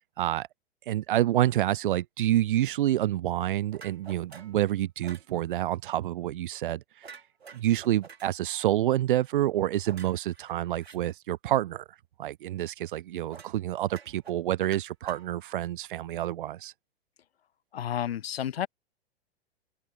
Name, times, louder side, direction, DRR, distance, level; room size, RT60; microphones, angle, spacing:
voice 1, 0.2-0.5 0.9-7.1 7.5-11.8 12.2-16.7, right 13 dB, 55° right, 0.4 m, -28 dB
sound 1, 3.7-4.6 5.0-5.3 7.0-8.3 9.8-11.0 13.3-13.6 13.9-15.6, right 5 dB, 75° right, 3.5 m, -49 dB
voice 2, 17.7-18.7, left 10 dB, 70° left, 0.6 m, -31 dB
open air
figure-of-eight pair, 100°, 32 cm